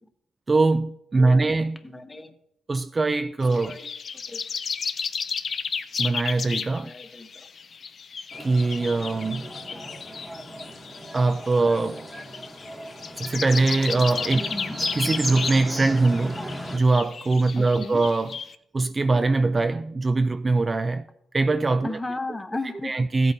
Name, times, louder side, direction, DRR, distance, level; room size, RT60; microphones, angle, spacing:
voice 1, 0.5-1.8 2.7-3.8 6.0-6.9 8.4-9.5 11.1-12.1 13.2-14.5 14.9-16.4 16.7-18.4 18.7-21.1 21.3-22.0 22.8-23.3, right 3 dB, 25° right, 0.4 m, -22 dB
voice 2, 1.8-2.3 3.6-3.9 4.3-4.4 6.7-7.5 9.4-10.0 14.5-14.8 17.6-18.0 21.8-23.1, left 2 dB, 15° left, 0.9 m, -35 dB
sound 1, 3.4-18.5, left 6 dB, 50° left, 0.5 m, -34 dB
sound 2, 8.3-16.8, equal, 10° right, 1.1 m, -36 dB
14.5 x 8.4 x 2.7 m
cardioid pair, 90°, 0 cm